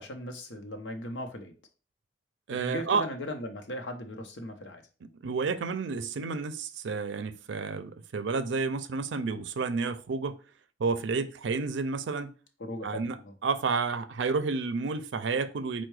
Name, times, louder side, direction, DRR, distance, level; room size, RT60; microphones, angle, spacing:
voice 1, 0.0-1.5 2.6-4.8 12.6-13.3, left 1 dB, 80° left, 5 dB, 0.8 m, -38 dB
voice 2, 2.5-3.1 5.2-10.4 10.8-12.3 12.8-15.9, right 4 dB, 85° right, 11 dB, 0.4 m, -30 dB
4.5 x 2.2 x 4.6 m, 0.36 s
head